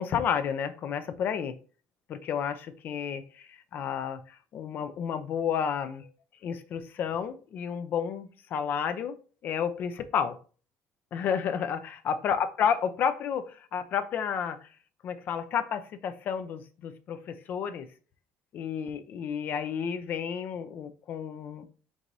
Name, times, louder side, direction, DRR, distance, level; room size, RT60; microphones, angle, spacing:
voice 1, 0.0-1.6 2.1-6.1 6.4-9.1 9.4-10.4 11.1-14.7 15.0-17.9 18.5-21.7, left 7 dB, 45° left, 10 dB, 0.5 m, -31 dB
4.7 x 4.0 x 2.6 m, 0.39 s
cardioid pair, 155°, 4 cm